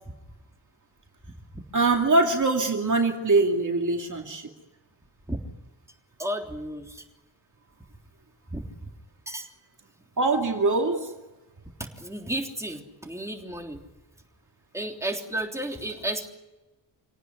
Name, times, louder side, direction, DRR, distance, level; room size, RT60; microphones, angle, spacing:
voice 1, 1.7-4.5 10.2-11.1, right 3 dB, 40° right, 2 dB, 2.6 m, -23 dB
voice 2, 6.2-7.0 8.5-8.7 9.3-9.5 11.8-13.8 14.7-16.3, right 1 dB, 5° right, 1 dB, 3.4 m, -33 dB
27.5 x 18.0 x 9.8 m, 1.1 s
wide cardioid pair, 150°, 46 cm